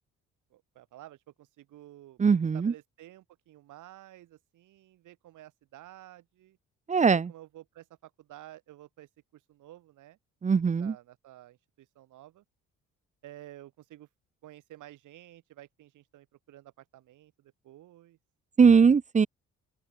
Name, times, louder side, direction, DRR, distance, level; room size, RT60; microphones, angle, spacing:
voice 1, 0.5-2.2 2.5-6.6 7.0-10.2 10.6-12.4 13.2-14.1 14.4-18.2, right 14 dB, 85° right, 5.6 m, -51 dB
voice 2, 2.2-2.7 6.9-7.3 10.4-10.9 18.6-19.3, right 5 dB, 25° right, 0.6 m, -21 dB
open air
cardioid pair, 90°, 30 cm